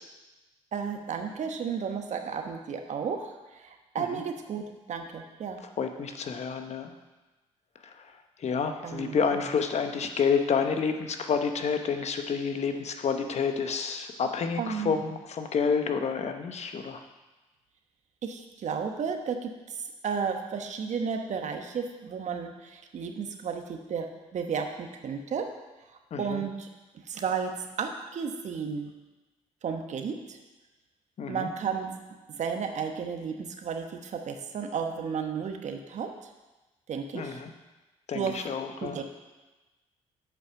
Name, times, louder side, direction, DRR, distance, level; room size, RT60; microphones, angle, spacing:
voice 1, 0.7-3.3 3.6-5.6 8.8-9.5 14.6-15.0 18.2-19.5 20.0-24.1 24.3-25.4 26.2-26.7 27.1-27.5 27.8-28.9 29.6-30.4 31.3-31.9 32.3-36.1 36.9-37.4 38.1-38.5 38.8-39.0, right 6 dB, 60° right, 5 dB, 1.1 m, -33 dB
voice 2, 5.8-6.9 8.4-17.0 26.1-26.4 31.2-31.5 37.1-37.5 38.1-39.0, left 6 dB, 55° left, 6 dB, 0.9 m, -29 dB
7.9 x 5.6 x 5.8 m, 1.1 s
supercardioid pair, 65°, 14 cm